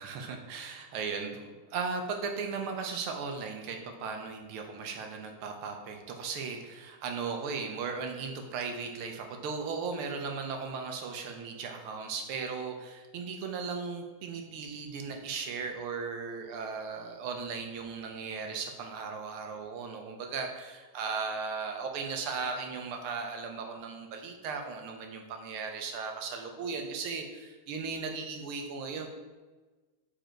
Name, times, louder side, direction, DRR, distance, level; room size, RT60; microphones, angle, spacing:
voice 1, 0.0-29.1, right 5 dB, 85° right, 4 dB, 1.7 m, -37 dB
5.1 x 5.0 x 4.4 m, 1.3 s
omnidirectional pair, 2.3 m